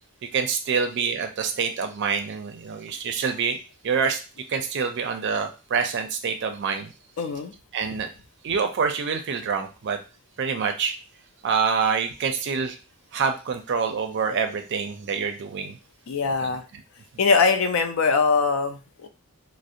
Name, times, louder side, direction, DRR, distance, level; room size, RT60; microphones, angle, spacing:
voice 1, 0.3-3.6 3.8-4.2 4.5-6.9 7.7-8.1 8.4-10.0 10.4-10.9 11.4-12.8 13.1-15.8 16.4-16.5, right 6 dB, 55° right, 6 dB, 0.4 m, -26 dB
voice 2, 7.2-7.6 16.1-16.6 17.2-19.1, left 4 dB, 70° left, 6 dB, 0.4 m, -22 dB
2.7 x 2.0 x 2.4 m, 0.31 s
head